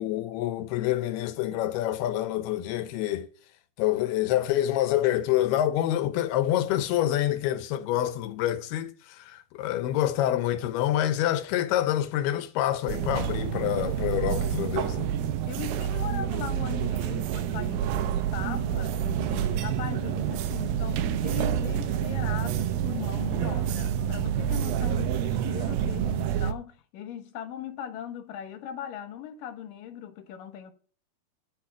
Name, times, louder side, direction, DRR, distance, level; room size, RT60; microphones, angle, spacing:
voice 1, 0.0-3.3 3.8-15.1, left 12 dB, 90° left, 2.9 m, -27 dB
sound 1, 12.9-26.5, right 9 dB, 75° right, 2.4 m, -28 dB
voice 2, 15.5-30.7, left 9 dB, 70° left, 2.6 m, -39 dB
10.5 x 5.8 x 5.9 m
omnidirectional pair, 4.4 m